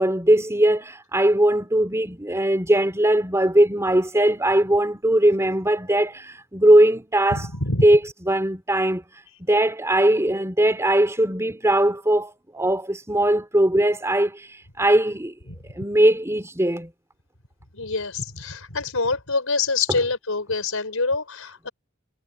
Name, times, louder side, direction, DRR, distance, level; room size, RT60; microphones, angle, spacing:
voice 1, 0.0-7.5 7.8-8.0 8.3-15.3 15.7-16.9, right 1 dB, 15° right, 3.6 m, -20 dB
voice 2, 7.3-7.9 17.7-21.7, left 3 dB, 85° left, 4.5 m, -25 dB
head